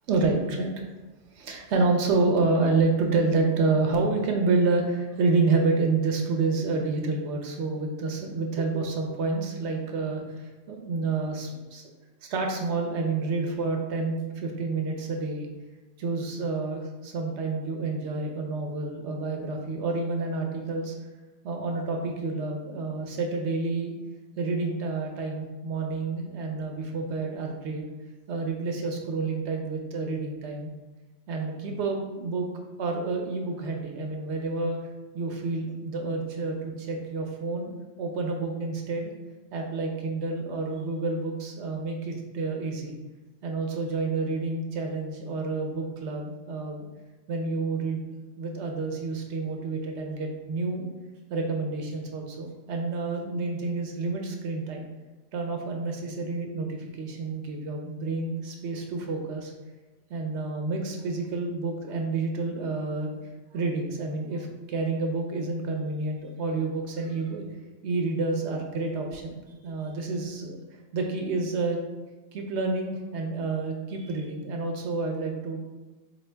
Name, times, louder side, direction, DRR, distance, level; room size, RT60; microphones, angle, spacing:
voice 1, 0.1-0.8 1.3-11.8 12.3-15.5 16.0-21.0 21.4-23.9 24.4-27.8 28.3-30.7 31.3-32.5 32.8-34.8 35.1-37.7 38.0-39.1 39.5-42.9 43.4-46.9 47.3-48.1 48.4-50.9 51.3-54.9 55.3-59.5 60.1-63.1 63.5-67.4 67.8-69.3 69.6-70.6 70.9-71.8 72.3-75.6, right 3 dB, 65° right, 2 dB, 0.8 m, -29 dB
4.2 x 2.4 x 3.3 m, 1.2 s
omnidirectional pair, 1.4 m